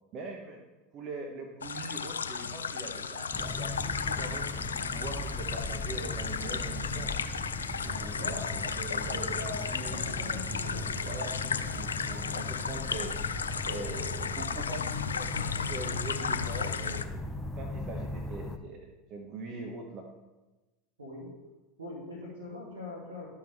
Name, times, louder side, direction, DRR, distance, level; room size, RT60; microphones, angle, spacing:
voice 1, 0.1-0.6 0.9-7.1 7.8-9.4 9.7-13.1 13.6-20.0, right 2 dB, 45° right, 2 dB, 1.0 m, -42 dB
sound 1, 1.6-17.0, left 6 dB, 90° left, 0.4 m, -34 dB
sound 2, 3.3-18.6, left 2 dB, 10° left, 0.7 m, -38 dB
voice 2, 9.1-10.9 21.0-21.3 21.8-23.3, left 2 dB, 90° right, -6 dB, 2.2 m, -41 dB
12.5 x 4.5 x 3.5 m, 1.1 s
hypercardioid pair, 85°, 0 cm